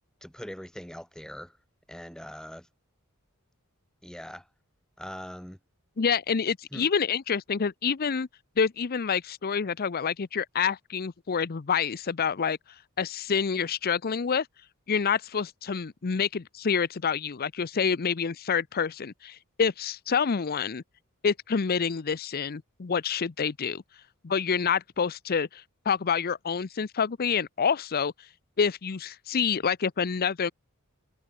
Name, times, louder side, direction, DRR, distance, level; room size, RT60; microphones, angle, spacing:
voice 1, 0.2-1.6 1.9-2.7 4.0-4.5 5.0-5.6 6.7-6.9, equal, 5° left, 4.1 m, -41 dB
voice 2, 6.0-8.3 8.6-12.6 13.0-14.5 14.9-20.8 21.2-23.8 24.2-28.1 28.6-30.5, left 6 dB, 45° left, 0.5 m, -27 dB
head